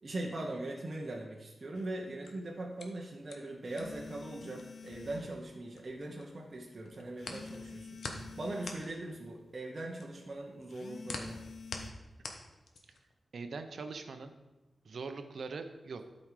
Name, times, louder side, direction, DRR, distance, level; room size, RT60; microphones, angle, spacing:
voice 1, 0.0-11.4, right 2 dB, 40° right, -2 dB, 1.1 m, -41 dB
sound 1, 1.7-1.9 3.7-5.4 7.2-8.9 10.7-11.9, left 4 dB, 60° left, 0.5 m, -48 dB
sound 2, 2.0-6.2 6.5-13.1, left 3 dB, 80° left, 1.2 m, -46 dB
voice 2, 13.3-14.3 14.8-16.0, right 4 dB, 70° right, 8 dB, 0.9 m, -42 dB
12.5 x 5.4 x 4.9 m, 1.1 s
wide cardioid pair, 125°, 0 cm